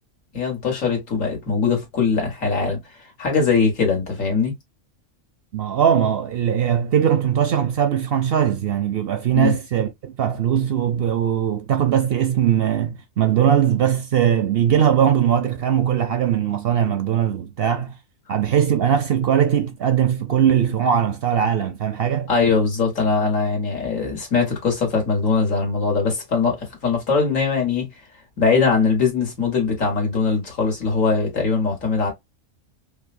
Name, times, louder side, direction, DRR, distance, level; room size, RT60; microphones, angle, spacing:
voice 1, 0.3-2.8 3.2-4.5 9.3-9.6 22.3-27.9 28.4-32.1, left 4 dB, 80° left, 1.9 m, -21 dB
voice 2, 5.5-17.9 18.3-22.3, right 9 dB, 65° right, 0.6 m, -20 dB
4.9 x 2.2 x 2.5 m
omnidirectional pair, 1.3 m